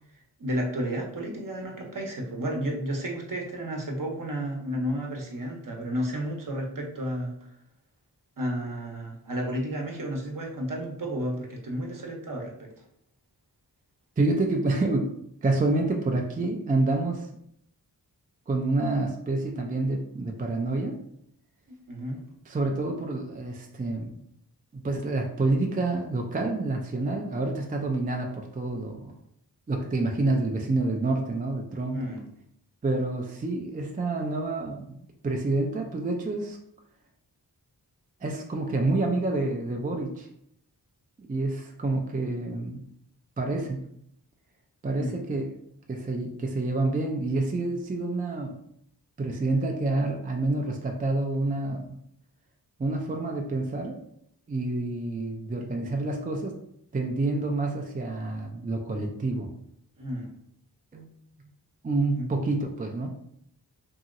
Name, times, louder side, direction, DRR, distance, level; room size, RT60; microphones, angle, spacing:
voice 1, 0.4-7.5 8.4-12.7 21.7-22.2 31.9-32.2 44.9-45.1 60.0-60.3 62.2-62.3, equal, 55° right, 0 dB, 0.8 m, -32 dB
voice 2, 14.2-15.1 15.4-17.3 18.5-21.0 22.5-24.2 24.7-29.1 29.7-32.0 32.8-36.6 38.2-40.3 41.2-42.8 43.4-43.8 44.8-45.4 45.9-48.6 49.2-52.0 52.8-54.0 54.5-56.6 56.9-59.5 60.9-61.1 61.8-63.2, right 2 dB, 20° right, 2 dB, 0.4 m, -28 dB
2.9 x 2.8 x 2.5 m, 0.72 s
wide cardioid pair, 60°, 40 cm